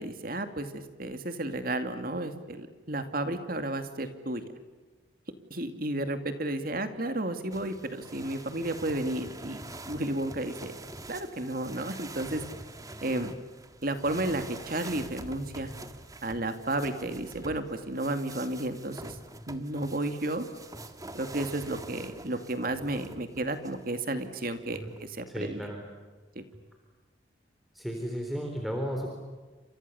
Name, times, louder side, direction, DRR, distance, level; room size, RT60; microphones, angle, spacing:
voice 1, 0.0-4.4 5.5-9.6 9.9-10.8 11.1-12.4 13.0-13.3 13.8-15.7 16.2-19.2 19.5-20.4 21.1-25.6 26.4-26.5, right 1 dB, 45° right, 8 dB, 2.5 m, -32 dB
sound 1, 7.5-23.8 24.6-25.2, right 2 dB, 20° right, 1.7 m, -45 dB
voice 2, 25.3-25.8 27.7-29.1, equal, ahead, 1 dB, 3.9 m, -34 dB
30.0 x 28.0 x 7.1 m, 1.3 s
head